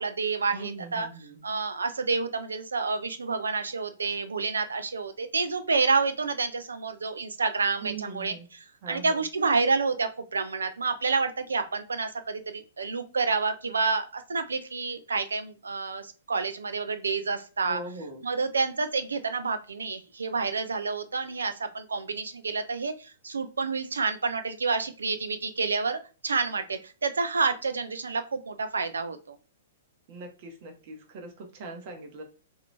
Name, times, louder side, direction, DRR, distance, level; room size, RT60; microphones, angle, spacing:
voice 1, 0.0-1.1 1.4-8.3 8.9-17.8 18.2-29.4, right 4 dB, 75° right, 9 dB, 0.5 m, -29 dB
voice 2, 0.5-1.4 7.8-8.5 8.8-9.2 17.7-18.2 30.1-32.2, right 3 dB, 45° right, 3 dB, 1.0 m, -41 dB
2.9 x 2.7 x 3.3 m, 0.34 s
figure-of-eight pair, 110°, 0 cm